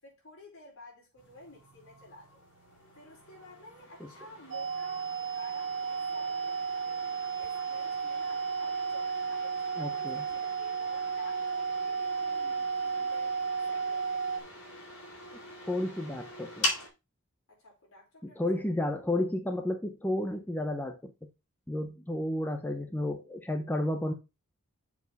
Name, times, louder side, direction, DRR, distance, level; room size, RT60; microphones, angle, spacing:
voice 1, 0.0-2.4 2.9-6.9 7.4-14.4 17.5-18.7, left 2 dB, 65° left, 4.7 m, -53 dB
sound 1, 1.2-16.9, left 2 dB, 80° left, 3.1 m, -43 dB
sound 2, 4.5-14.4, right 6 dB, 60° right, 0.8 m, -33 dB
voice 2, 9.8-10.2 15.6-16.7 18.2-21.1 21.7-24.1, left 1 dB, 10° left, 0.6 m, -32 dB
7.1 x 4.5 x 4.0 m
head